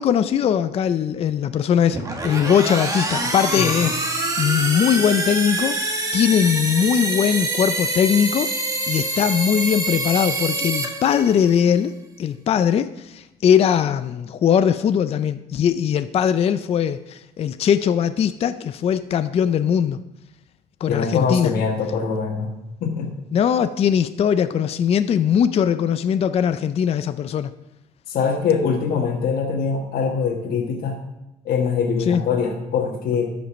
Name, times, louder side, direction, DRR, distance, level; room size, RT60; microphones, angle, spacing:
voice 1, 0.0-5.8 6.1-8.5 8.9-11.9 12.2-20.0 20.8-21.5 23.3-27.5 32.1-32.2, left 8 dB, 35° left, 11 dB, 0.4 m, -20 dB
sound 1, 1.9-11.6, right 2 dB, 20° right, 1.5 m, -25 dB
voice 2, 20.9-22.5 22.8-23.1 28.1-31.0 31.4-33.3, left 5 dB, 60° left, -1 dB, 1.4 m, -23 dB
13.0 x 5.2 x 5.0 m, 0.94 s
cardioid pair, 110°, 17 cm